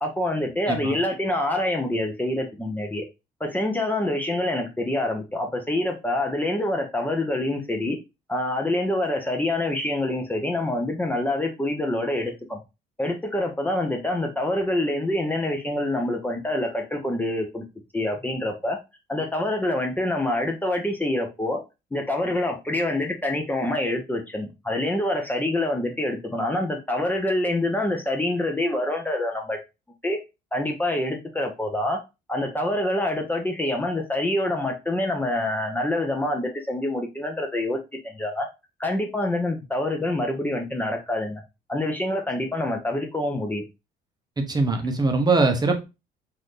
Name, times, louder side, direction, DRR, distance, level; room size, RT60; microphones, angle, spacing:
voice 1, 0.0-3.1 3.4-8.0 8.3-12.6 13.0-17.6 17.9-18.8 19.1-21.6 21.9-29.6 30.0-30.2 30.5-32.0 32.3-37.8 38.0-38.5 38.8-41.4 41.7-43.6, left 1 dB, 10° left, 0.7 m, -26 dB
voice 2, 44.4-45.8, right 3 dB, 25° right, 0.7 m, -22 dB
4.0 x 2.6 x 3.1 m
cardioid pair, 110°, 17 cm